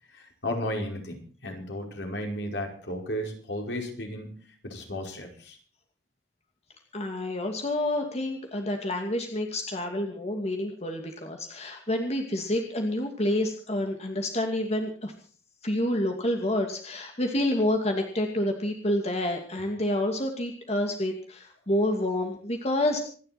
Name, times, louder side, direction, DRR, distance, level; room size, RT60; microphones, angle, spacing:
voice 1, 0.1-5.6, left 1 dB, 75° left, 2 dB, 5.1 m, -34 dB
voice 2, 6.9-15.1 15.6-23.0, left 1 dB, 35° left, 3 dB, 2.5 m, -28 dB
27.0 x 11.0 x 4.3 m, 0.43 s
head